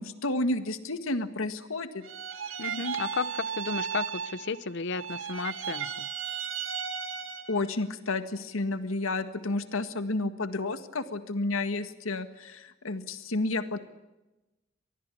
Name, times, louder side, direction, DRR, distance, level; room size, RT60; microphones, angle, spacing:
voice 1, 0.0-2.0 7.5-13.8, left 2 dB, 90° left, 10 dB, 1.7 m, -31 dB
sound 1, 2.0-4.7 4.9-7.7, right 7 dB, 70° right, 2.4 m, -35 dB
voice 2, 2.6-6.1, left 4 dB, 60° left, 18 dB, 0.8 m, -33 dB
26.5 x 19.5 x 8.5 m, 1.0 s
head